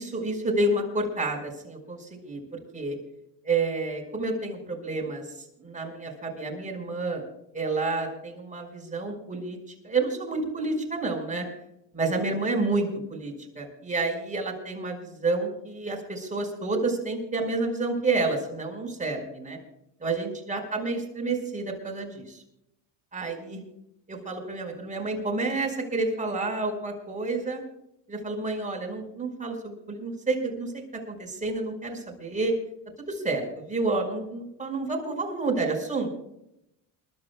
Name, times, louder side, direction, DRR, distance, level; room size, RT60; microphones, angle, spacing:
voice 1, 0.0-3.0 3.4-7.2 7.5-9.6 9.8-11.4 11.9-19.6 20.0-22.4 23.1-23.6 24.1-27.6 28.1-32.5 33.1-36.1, right 3 dB, 15° right, 1 dB, 5.2 m, -29 dB
29.0 x 12.5 x 2.3 m, 0.81 s
supercardioid pair, 90°, 47 cm